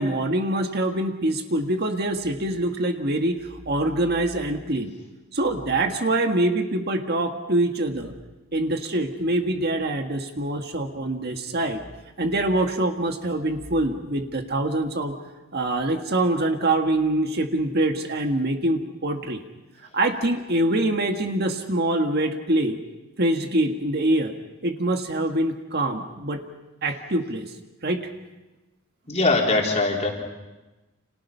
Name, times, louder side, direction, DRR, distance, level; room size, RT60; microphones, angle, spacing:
voice 1, 0.0-4.9 5.3-8.1 8.5-11.8 12.2-15.2 15.5-19.4 19.9-22.8 23.2-24.4 24.6-26.5 26.8-27.5 27.8-28.0, right 1 dB, 50° right, 5 dB, 1.7 m, -24 dB
voice 2, 29.1-30.1, left 3 dB, 35° left, 0 dB, 3.8 m, -21 dB
30.0 x 27.0 x 5.7 m, 1.1 s
head